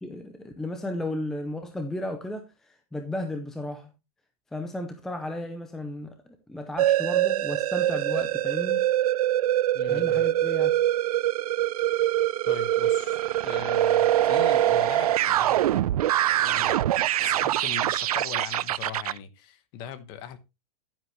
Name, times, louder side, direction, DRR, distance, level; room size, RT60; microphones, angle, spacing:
voice 1, 0.0-3.9 4.5-8.8 9.9-10.7, left 1 dB, ahead, 0.5 m, -34 dB
sound 1, 6.8-19.2, right 13 dB, 85° right, 0.5 m, -24 dB
voice 2, 9.7-10.3 12.4-16.8 17.2-20.4, left 8 dB, 25° left, 1.0 m, -40 dB
11.0 x 9.9 x 3.2 m
supercardioid pair, 175°, 19 cm